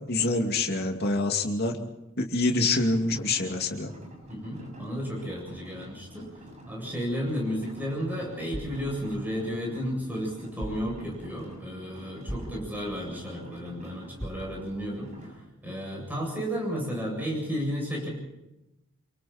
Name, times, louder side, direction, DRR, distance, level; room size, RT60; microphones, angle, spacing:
voice 1, 0.1-1.7 2.2-3.9, left 2 dB, 50° left, 3 dB, 2.7 m, -26 dB
sound 1, 2.6-15.3, right 1 dB, 35° right, 7.1 m, -48 dB
voice 2, 4.3-6.3 6.7-15.3 15.6-18.1, equal, 10° right, -1 dB, 7.9 m, -33 dB
sound 2, 10.6-11.4 12.3-13.2 14.2-15.0, equal, 15° left, 3.0 m, -41 dB
27.5 x 24.0 x 4.4 m, 0.94 s
head